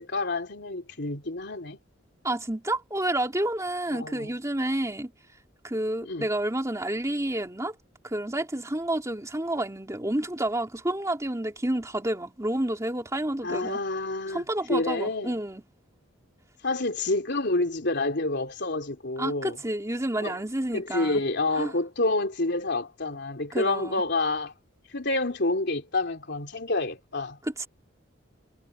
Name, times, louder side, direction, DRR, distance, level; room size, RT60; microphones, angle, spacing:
voice 1, 0.0-1.8 3.9-4.3 6.0-6.3 13.4-14.4 14.7-15.3 16.6-19.6 20.2-20.4 20.7-24.5 24.9-27.4, left 2 dB, 60° left, 3.4 m, -28 dB
voice 2, 2.2-5.1 5.6-7.7 8.0-13.8 14.3-15.6 19.2-21.2 21.6-21.7 23.5-24.0 27.4-27.7, right 1 dB, 15° right, 2.7 m, -29 dB
head